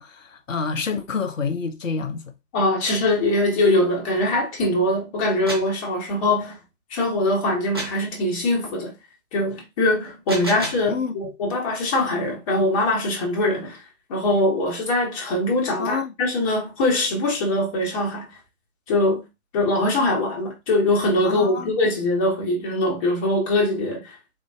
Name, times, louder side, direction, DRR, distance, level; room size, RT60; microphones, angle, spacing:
voice 1, 0.0-2.2 10.9-11.1 15.8-16.1 21.2-21.8, left 5 dB, 75° left, 0.7 m, -28 dB
voice 2, 2.5-6.6 6.9-8.9 9.3-13.8 14.1-18.3 18.9-19.2 19.5-24.2, left 1 dB, 25° left, 1.1 m, -22 dB
sound 1, 5.2-5.8 7.7-8.1 10.0-10.9, right 1 dB, 20° right, 0.4 m, -31 dB
3.7 x 2.5 x 2.3 m
figure-of-eight pair, 130°, 39 cm